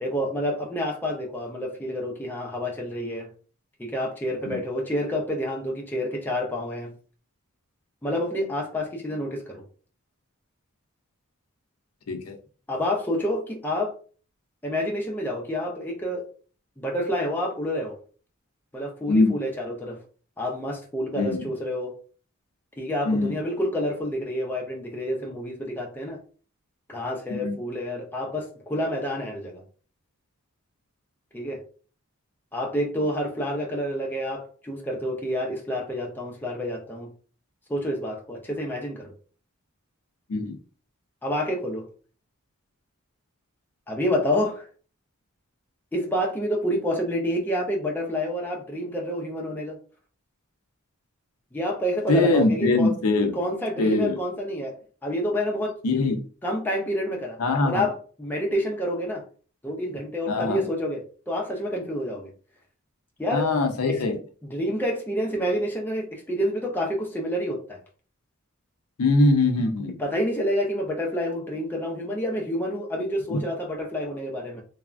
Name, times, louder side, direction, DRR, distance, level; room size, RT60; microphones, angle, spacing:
voice 1, 0.0-3.3 3.8-6.9 8.0-9.6 12.7-13.9 14.6-16.3 16.8-18.0 18.7-20.0 20.4-22.0 22.8-26.2 26.9-29.6 31.3-31.6 32.5-37.1 37.7-39.1 41.2-41.9 43.9-44.7 45.9-49.8 51.5-52.9 53.3-54.7 55.0-55.7 56.4-59.2 59.6-62.3 63.2-63.5 63.9-64.0 64.5-67.8 70.0-74.6, equal, 10° left, -1 dB, 0.4 m, -28 dB
voice 2, 21.1-21.5 23.1-23.4 27.3-27.5 40.3-40.6 52.1-53.4 53.8-54.2 55.8-56.2 57.4-57.9 60.3-60.6 63.3-64.2 69.0-70.0 73.3-73.4, left 2 dB, 80° left, 5 dB, 0.5 m, -22 dB
3.2 x 2.0 x 2.4 m, 0.41 s
head